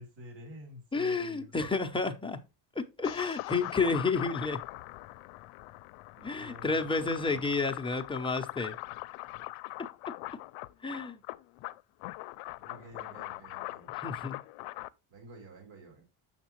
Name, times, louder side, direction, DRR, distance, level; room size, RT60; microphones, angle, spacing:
voice 1, 0.0-1.8 6.2-7.5 12.6-14.3 15.1-16.0, right 1 dB, 60° right, 3.3 m, -50 dB
voice 2, 0.9-2.4 2.8-4.6 6.2-8.8 10.8-11.2 14.0-14.4, left 4 dB, 10° left, 0.5 m, -30 dB
sound 1, 3.0-14.9, left 20 dB, 85° left, 0.6 m, -41 dB
7.2 x 6.5 x 3.0 m
cardioid pair, 140°, 49 cm